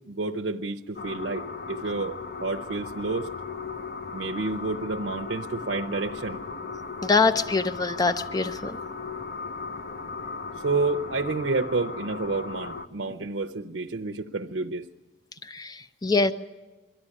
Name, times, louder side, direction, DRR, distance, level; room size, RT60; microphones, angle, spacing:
voice 1, 0.1-3.3 4.1-6.4 10.6-14.9, right 3 dB, 80° right, 3 dB, 0.7 m, -29 dB
sound 1, 1.0-12.9, left 4 dB, 55° left, 1.0 m, -37 dB
voice 2, 7.0-8.8 15.4-16.3, left 4 dB, 20° left, 10 dB, 0.6 m, -24 dB
23.0 x 13.5 x 9.8 m, 1.2 s
head